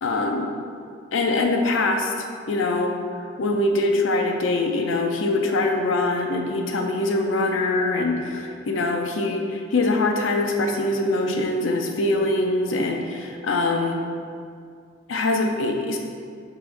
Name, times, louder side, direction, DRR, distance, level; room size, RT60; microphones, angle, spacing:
voice 1, 0.0-0.5 1.1-2.1 2.5-3.0 3.4-14.0 15.1-16.0, left 2 dB, 80° left, 3 dB, 0.5 m, -23 dB
3.5 x 3.0 x 4.7 m, 2.2 s
head